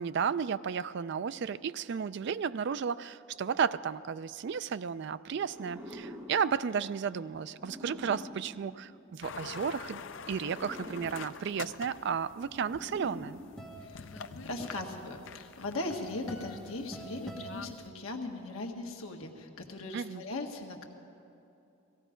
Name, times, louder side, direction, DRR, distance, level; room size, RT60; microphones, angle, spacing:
voice 1, 0.0-10.0 10.3-13.4 19.9-20.2, right 6 dB, 50° right, 15 dB, 0.3 m, -33 dB
sound 1, 5.4-9.5 10.2-14.2, equal, 15° right, 1.5 m, -47 dB
sound 2, 9.2-17.9, left 6 dB, 55° left, 0.5 m, -47 dB
sound 3, 13.2-18.4, right 1 dB, 5° left, 1.5 m, -47 dB
voice 2, 13.8-20.9, left 2 dB, 75° left, 2 dB, 1.5 m, -39 dB
18.0 x 15.5 x 5.0 m, 2.8 s
head